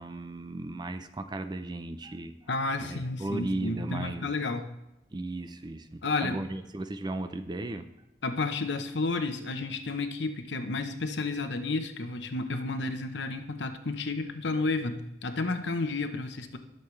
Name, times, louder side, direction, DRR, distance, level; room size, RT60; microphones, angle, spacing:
voice 1, 0.0-2.3 2.8-4.3 5.1-7.9, right 2 dB, 25° right, 9 dB, 0.5 m, -36 dB
voice 2, 2.5-4.7 6.0-6.4 8.2-16.6, left 3 dB, 65° left, 8 dB, 0.9 m, -31 dB
18.0 x 6.6 x 3.3 m, 0.87 s
head